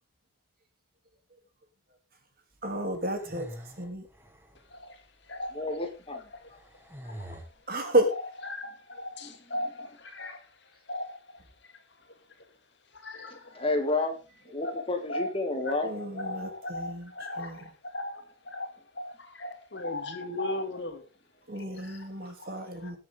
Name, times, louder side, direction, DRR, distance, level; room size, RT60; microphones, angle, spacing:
voice 1, 2.6-3.5 3.8-4.1 7.7-8.1 15.8-17.1 17.4-17.6 21.5-23.0, right 1 dB, 45° right, 2.9 m, -31 dB
sound 1, 2.8-4.7 5.5-5.6 6.4-7.5, equal, 10° right, 1.7 m, -45 dB
voice 2, 4.7-5.8 6.1-6.5 7.1-7.4 8.1-12.5 12.9-13.6 14.6-15.3 15.6-21.1 21.6-22.9, left 1 dB, 55° left, 2.5 m, -38 dB
voice 3, 5.5-6.2 7.0-7.2 9.2-9.3 13.5-14.1 14.4-15.9, left 2 dB, 25° left, 2.4 m, -30 dB
20.0 x 7.6 x 3.7 m
head